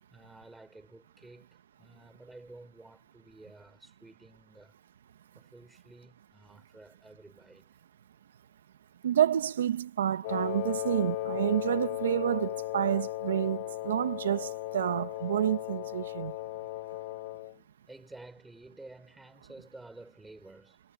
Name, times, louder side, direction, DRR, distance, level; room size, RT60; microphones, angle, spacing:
voice 1, 0.0-4.7 5.3-7.7 17.9-20.8, right 2 dB, 5° right, 4.1 m, -52 dB
voice 2, 9.0-16.3, right 10 dB, 85° right, 1.5 m, -29 dB
Wind instrument woodwind instrument, 10.2-17.5, left 17 dB, 45° left, 1.2 m, -36 dB
hypercardioid pair, 150°, 0 cm